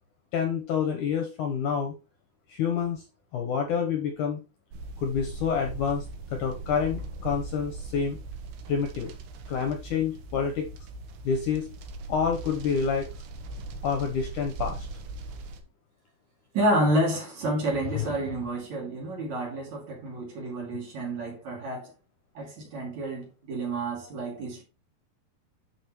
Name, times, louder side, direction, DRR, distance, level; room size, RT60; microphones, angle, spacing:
voice 1, 0.3-1.9 2.5-3.0 3.3-4.4 5.0-8.2 8.7-9.1 9.5-10.7 11.2-11.7 12.1-13.1 13.8-14.9, left 6 dB, 65° left, 2.1 m, -28 dB
sound 1, 4.7-15.6, right 3 dB, 80° right, 3.1 m, -40 dB
voice 2, 16.5-21.9 22.4-24.6, right 1 dB, 50° right, 3.5 m, -29 dB
sound 2, 17.5-18.7, left 14 dB, 85° left, 1.9 m, -37 dB
11.0 x 5.4 x 3.1 m
omnidirectional pair, 4.6 m